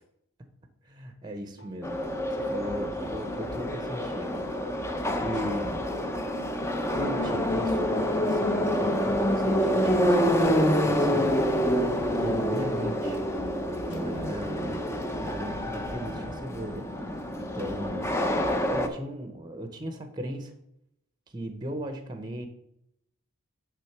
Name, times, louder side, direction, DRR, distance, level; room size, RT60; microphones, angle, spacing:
voice 1, 0.8-2.0 2.3-4.8 5.2-5.9 6.9-11.3 12.1-13.2 13.9-18.1 18.6-20.6 21.3-22.5, right 1 dB, 20° right, 7 dB, 0.8 m, -37 dB
sound 1, 1.6-1.7 2.0-4.2 4.5-8.5 8.8-10.3 10.6-12.8 13.1-17.1 17.4-18.7, equal, 55° left, 1.5 m, -47 dB
Subway metro underground, 1.8-18.9, equal, 10° left, 0.6 m, -27 dB
9.7 x 3.7 x 5.9 m, 0.78 s
head